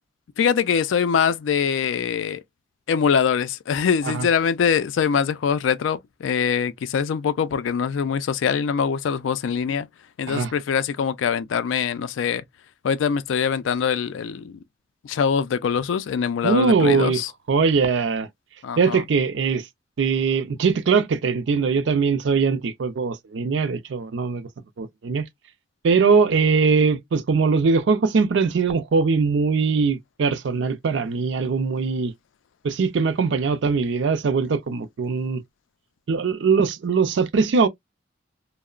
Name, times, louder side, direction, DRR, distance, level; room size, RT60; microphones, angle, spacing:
voice 1, 0.4-2.4 2.9-9.9 10.2-12.4 12.8-14.6 15.0-17.3 18.6-19.0, left 7 dB, 80° left, 0.3 m, -23 dB
voice 2, 16.4-17.2 17.5-18.3 18.8-19.7 20.0-24.5 24.8-25.3 25.8-32.1 32.6-35.4 36.1-37.7, right 5 dB, 70° right, 0.4 m, -21 dB
2.8 x 2.0 x 2.3 m
head